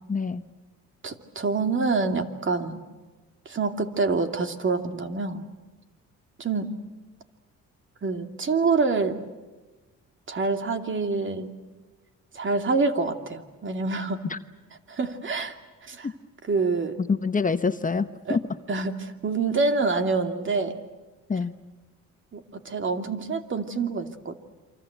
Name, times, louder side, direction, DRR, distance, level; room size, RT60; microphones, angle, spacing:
voice 1, 0.1-0.4 14.2-14.4 16.0-16.1 17.0-18.4 21.3-21.5, left 4 dB, 25° left, 10 dB, 1.0 m, -26 dB
voice 2, 1.0-2.8 3.5-5.4 6.4-6.7 8.0-9.2 10.3-11.5 12.3-14.2 14.9-15.5 15.8-16.1 16.5-17.0 18.3-18.4 18.7-20.8 22.3-24.3, right 4 dB, 40° right, 6 dB, 2.6 m, -26 dB
28.5 x 25.5 x 8.1 m, 1.2 s
cardioid pair, 90°, 30 cm